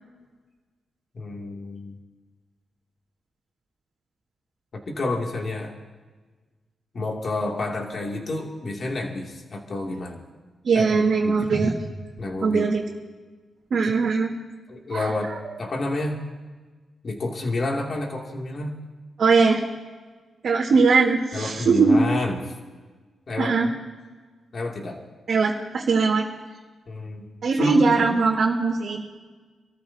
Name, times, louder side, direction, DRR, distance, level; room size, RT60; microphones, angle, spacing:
voice 1, 1.1-2.0 4.9-5.7 6.9-10.2 10.7-11.5 12.2-12.7 14.7-16.2 17.0-18.8 21.3-22.5 23.3-23.7 24.5-25.0 26.9-27.3 27.5-28.0, left 2 dB, 50° left, 0 dB, 2.8 m, -29 dB
voice 2, 10.6-11.7 12.4-12.8 13.7-14.3 14.9-15.1 19.2-19.6 20.4-22.0 23.4-23.7 25.3-26.3 27.4-29.0, right 4 dB, 65° right, -4 dB, 2.0 m, -20 dB
27.0 x 14.0 x 2.9 m, 1.4 s
cardioid pair, 80°, 0 cm